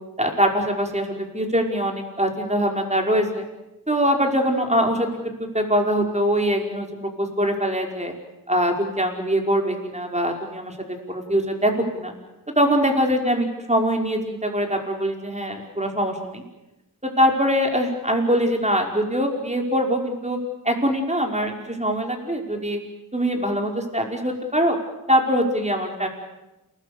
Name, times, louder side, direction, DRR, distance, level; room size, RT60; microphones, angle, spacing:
voice 1, 0.2-3.4 3.9-5.1 5.5-6.9 7.2-8.1 8.5-10.8 11.1-12.1 12.6-16.4 17.0-20.4 20.6-22.8 23.1-24.8 25.1-26.1, equal, 20° right, 2 dB, 5.4 m, -23 dB
28.5 x 20.0 x 8.2 m, 0.97 s
wide cardioid pair, 50°, 38 cm